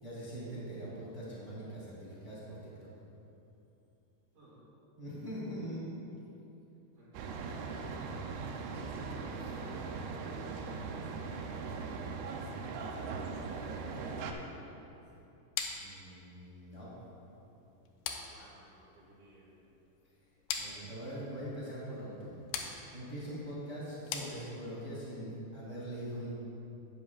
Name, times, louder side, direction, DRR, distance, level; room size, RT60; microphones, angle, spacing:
voice 1, 0.0-2.7 5.0-5.9 8.6-9.1 9.4-9.5 15.7-16.9 20.6-22.4 22.9-26.3, equal, 20° right, -9 dB, 0.9 m, -42 dB
voice 2, 6.9-7.7 9.0-11.3 13.2-15.0 18.2-19.5, equal, 55° right, -8 dB, 3.3 m, -56 dB
sound 1, 7.1-14.3, right 4 dB, 80° right, 2.6 m, -40 dB
sound 2, 15.6-24.9, left 7 dB, 85° left, 2.8 m, -43 dB
12.5 x 9.2 x 2.4 m, 2.9 s
omnidirectional pair, 4.8 m